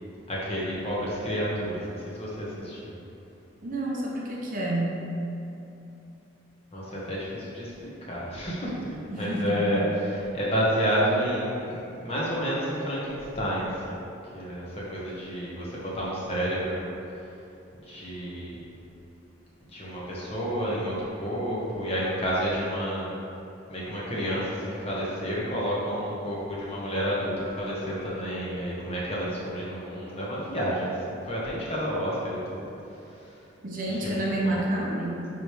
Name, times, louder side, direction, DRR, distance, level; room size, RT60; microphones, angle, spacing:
voice 1, 0.3-2.9 6.7-8.9 9.2-14.0 14.3-16.9 17.8-18.6 19.7-23.1 23.7-32.6 33.1-33.3 33.9-34.6, equal, 30° left, -7 dB, 1.4 m, -30 dB
voice 2, 3.6-5.0 9.1-9.6 33.6-35.3, right 1 dB, 45° right, -3 dB, 0.9 m, -29 dB
9.4 x 3.4 x 3.1 m, 2.8 s
head